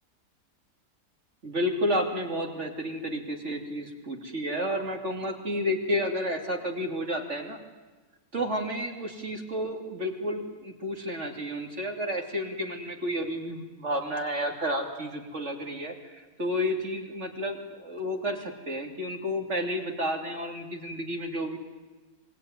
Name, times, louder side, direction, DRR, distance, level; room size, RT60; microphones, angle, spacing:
voice 1, 1.4-7.6 8.3-21.6, equal, 40° right, 3 dB, 3.1 m, -31 dB
26.0 x 21.0 x 9.6 m, 1.3 s
omnidirectional pair, 1.8 m